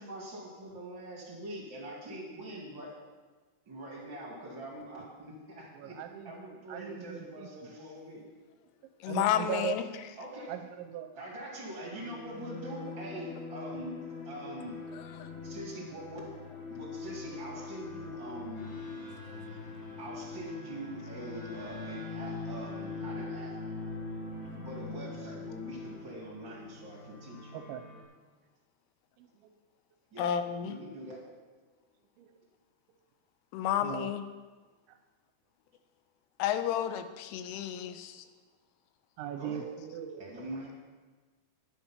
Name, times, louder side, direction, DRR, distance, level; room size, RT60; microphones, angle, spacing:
voice 1, 0.0-2.9 3.6-8.2 10.2-10.5 11.1-14.8 15.4-16.3 16.7-18.7 20.0-23.6 24.5-27.6 30.1-30.3 30.6-31.2 39.4-39.6 40.2-40.7, right 1 dB, 45° right, -3 dB, 1.5 m, -43 dB
voice 2, 5.7-7.7 9.1-9.8 10.5-11.1 27.5-27.8 29.2-29.5 32.2-32.3 33.8-34.1 37.9-38.0 39.2-40.2, right 10 dB, 80° right, 6 dB, 2.7 m, -39 dB
voice 3, 9.0-9.8 15.2-15.3 30.2-30.8 33.5-34.2 36.4-38.2, left 10 dB, 85° left, 10 dB, 3.2 m, -31 dB
sound 1, 11.8-28.0, left 3 dB, 65° left, 4.0 m, -42 dB
11.0 x 10.0 x 5.7 m, 1.3 s
omnidirectional pair, 5.7 m